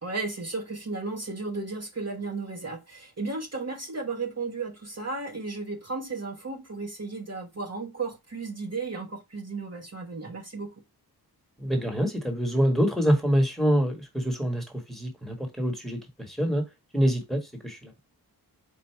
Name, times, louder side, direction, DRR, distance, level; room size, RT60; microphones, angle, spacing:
voice 1, 0.0-10.7, right 3 dB, 40° right, 1.1 m, -34 dB
voice 2, 11.6-16.6 16.9-17.9, equal, ahead, 1.4 m, -26 dB
4.6 x 2.5 x 4.4 m
wide cardioid pair, 70°, 38 cm